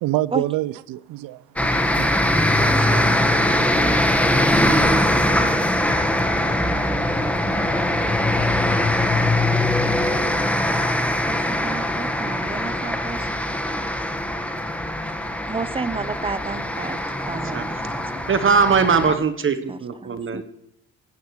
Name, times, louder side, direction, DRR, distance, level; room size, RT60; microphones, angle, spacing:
voice 1, 0.0-2.1, right 16 dB, 70° right, 0.5 m, -26 dB
sound 1, 1.6-19.2, left 1 dB, 5° left, 1.3 m, -21 dB
voice 2, 2.6-3.5 3.8-4.6 11.3-13.3 15.5-18.2 19.7-20.4, right 4 dB, 15° right, 0.7 m, -32 dB
voice 3, 18.3-20.4, right 5 dB, 35° right, 1.0 m, -20 dB
15.0 x 8.8 x 3.1 m
supercardioid pair, 70°, 35 cm